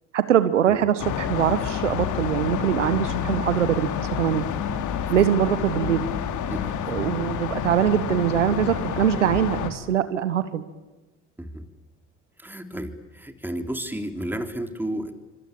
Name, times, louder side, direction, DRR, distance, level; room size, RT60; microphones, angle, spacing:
voice 1, 0.1-3.9 4.2-4.4 5.1-6.0 6.9-10.6, right 10 dB, 85° right, 13 dB, 1.4 m, -23 dB
sound 1, 1.0-9.7, left 8 dB, 55° left, 3.0 m, -28 dB
voice 2, 12.4-15.1, right 1 dB, 5° right, 6 dB, 3.8 m, -32 dB
25.5 x 25.5 x 8.8 m, 1.1 s
hypercardioid pair, 60°, 35 cm